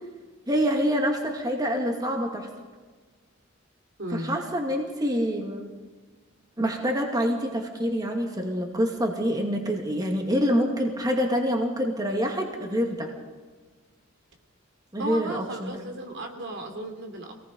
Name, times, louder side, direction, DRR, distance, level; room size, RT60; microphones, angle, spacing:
voice 1, 0.5-2.5 4.1-5.7 6.6-13.1 14.9-15.8, equal, 20° right, 2 dB, 2.3 m, -26 dB
voice 2, 4.0-4.4 15.0-17.3, right 1 dB, 60° right, 4 dB, 3.0 m, -35 dB
26.0 x 19.0 x 5.4 m, 1.4 s
head